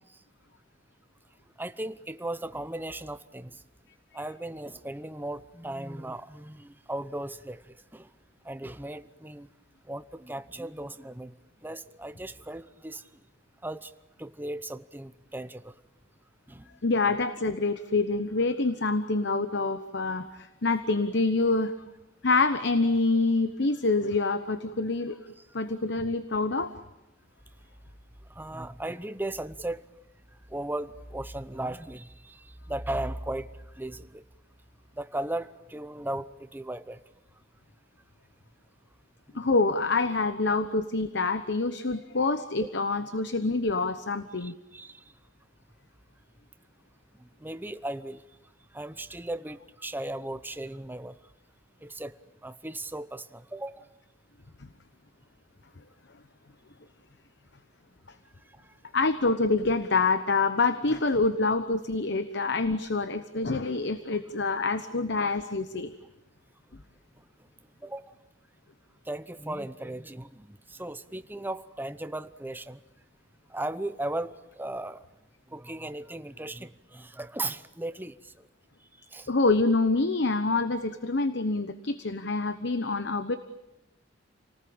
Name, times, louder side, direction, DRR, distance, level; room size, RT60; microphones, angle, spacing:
voice 1, 1.6-3.6 4.1-8.1 8.4-9.5 9.8-11.3 11.6-13.2 13.6-13.9 14.2-15.8 16.5-16.7 28.3-29.9 30.3-34.2 34.9-37.0 39.3-39.5 44.4-45.1 47.1-48.3 48.7-51.2 51.8-52.2 52.4-53.9 58.5-58.8 64.7-64.8 67.8-68.1 69.0-72.8 73.5-75.0 75.5-78.5 78.8-79.3, right 1 dB, 10° right, 12 dB, 0.8 m, -37 dB
voice 2, 16.8-21.7 22.2-25.2 25.5-26.7 39.3-44.5 54.6-54.7 58.9-65.9 79.3-83.4, left 3 dB, 60° left, 11 dB, 1.1 m, -26 dB
30.0 x 19.0 x 8.8 m, 0.97 s
head